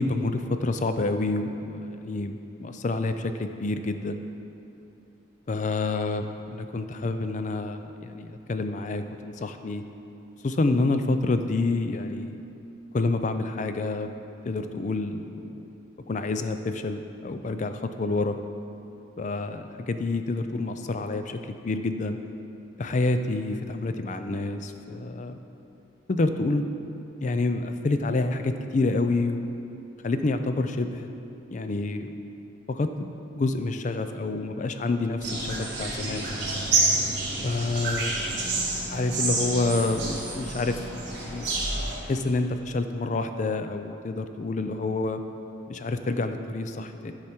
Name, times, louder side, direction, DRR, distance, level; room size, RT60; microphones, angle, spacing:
voice 1, 0.0-4.2 5.5-9.8 10.4-12.4 12.9-14.1 14.4-15.6 16.1-18.4 19.2-22.2 22.8-25.4 26.1-26.7 27.2-29.5 30.0-31.1 31.5-32.2 32.7-33.1 33.4-36.3 37.4-38.2 38.9-40.8 41.2-41.5 42.0-45.2 45.7-47.1, left 3 dB, 40° left, 8 dB, 0.4 m, -28 dB
sound 1, 35.2-42.0, right 2 dB, 55° right, 2.2 m, -28 dB
11.5 x 4.9 x 4.4 m, 2.7 s
head